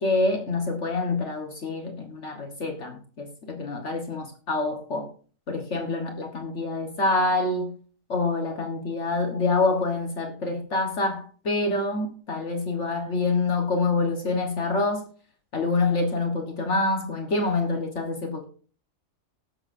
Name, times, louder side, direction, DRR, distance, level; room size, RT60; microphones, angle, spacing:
voice 1, 0.0-5.1 5.5-7.7 8.1-15.0 15.5-18.5, left 3 dB, 60° left, 1.6 m, -26 dB
19.5 x 7.3 x 2.6 m
omnidirectional pair, 1.4 m